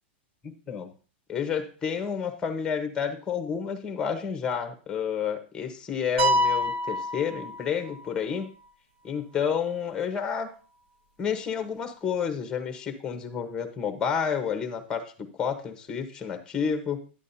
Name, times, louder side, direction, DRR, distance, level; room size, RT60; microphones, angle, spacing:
voice 1, 1.3-8.5 9.0-10.5 11.2-15.0 15.4-17.0, left 7 dB, 10° left, 8 dB, 1.2 m, -30 dB
sound 1, 6.2-8.1, equal, 85° right, 3.6 m, -26 dB
10.5 x 8.5 x 2.8 m, 0.38 s
supercardioid pair, 160°, 6 cm